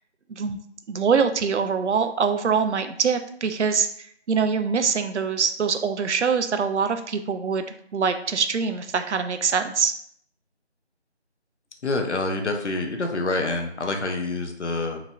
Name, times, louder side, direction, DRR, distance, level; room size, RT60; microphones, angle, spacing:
voice 1, 0.9-7.6 7.9-9.9, right 6 dB, 85° right, 8 dB, 0.5 m, -24 dB
voice 2, 11.8-15.0, left 2 dB, 80° left, 4 dB, 0.7 m, -27 dB
2.9 x 2.9 x 2.3 m, 0.66 s
figure-of-eight pair, 175°, 34 cm